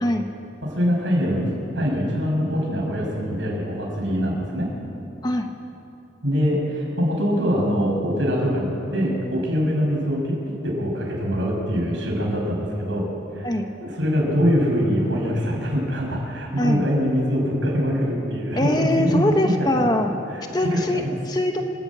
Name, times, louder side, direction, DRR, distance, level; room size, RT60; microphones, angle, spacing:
voice 1, 0.6-4.7 6.2-13.1 13.3-13.5 13.8-19.7 20.3-21.0, equal, 80° right, -2 dB, 6.6 m, -23 dB
voice 2, 16.6-16.9 18.5-20.2 20.5-21.6, left 1 dB, 20° left, 5 dB, 1.1 m, -22 dB
28.0 x 12.5 x 8.7 m, 2.8 s
head